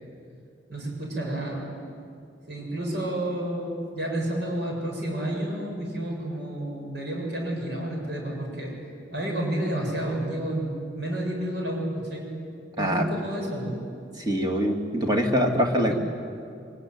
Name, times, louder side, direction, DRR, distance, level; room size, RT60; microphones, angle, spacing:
voice 1, 0.7-1.7 2.5-8.7 9.1-11.9 12.1-12.3 12.8-13.8 15.9-16.0, right 1 dB, 60° right, -1 dB, 7.2 m, -30 dB
voice 2, 12.8-13.1 14.2-15.9, equal, 20° right, 2 dB, 2.4 m, -24 dB
24.5 x 22.0 x 9.5 m, 2.5 s
head